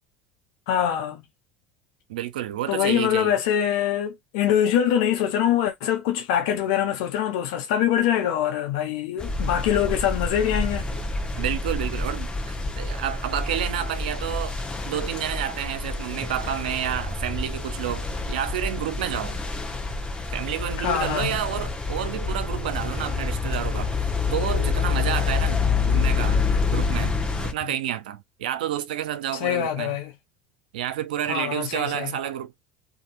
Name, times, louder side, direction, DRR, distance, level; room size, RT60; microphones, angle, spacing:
voice 1, 0.7-1.2 2.7-10.8 20.8-21.4 29.4-30.1 31.3-32.1, left 10 dB, 70° left, 0.6 m, -24 dB
voice 2, 2.1-3.4 11.4-14.6 14.8-19.4 20.3-26.4 26.7-27.2 27.4-30.0 30.7-32.6, right 11 dB, 80° right, 0.5 m, -30 dB
sound 1, 9.2-27.5, left 4 dB, 20° left, 1.0 m, -27 dB
2.7 x 2.6 x 2.6 m
hypercardioid pair, 75°, 5 cm